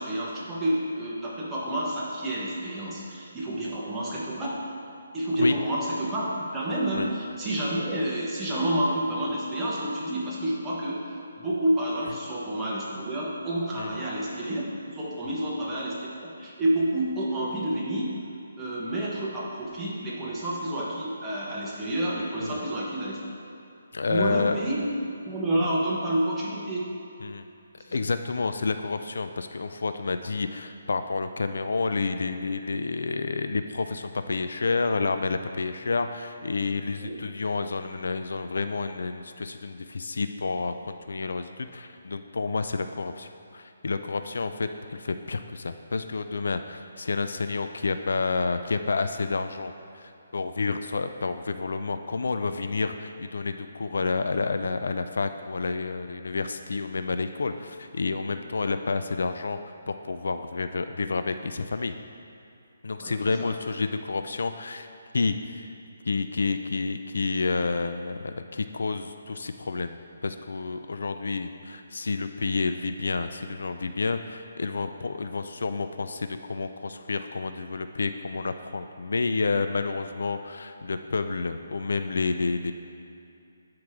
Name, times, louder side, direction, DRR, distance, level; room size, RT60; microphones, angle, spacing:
voice 1, 0.0-4.5 5.1-6.3 6.5-18.2 18.6-23.2 24.1-24.8 25.3-26.9 37.0-37.2 63.0-63.1 63.4-63.5, right 1 dB, 10° right, -7 dB, 1.2 m, -29 dB
voice 2, 23.9-24.6 27.2-27.4 27.8-59.6 59.9-61.9 62.8-64.9 65.1-65.7 66.0-82.7, left 4 dB, 75° left, 9 dB, 0.4 m, -29 dB
11.5 x 4.8 x 3.6 m, 2.6 s
hypercardioid pair, 160°, 0 cm